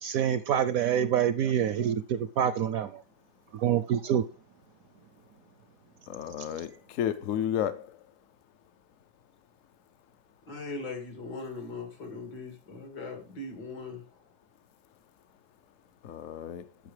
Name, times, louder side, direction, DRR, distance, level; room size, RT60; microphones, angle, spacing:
voice 1, 0.0-3.0 3.5-4.3, right 9 dB, 70° right, 0.9 m, -26 dB
voice 2, 6.1-7.9 16.0-16.6, left 10 dB, 60° left, 0.9 m, -32 dB
voice 3, 10.5-14.3, left 3 dB, 80° left, 3.0 m, -40 dB
10.5 x 6.6 x 3.3 m
omnidirectional pair, 1.8 m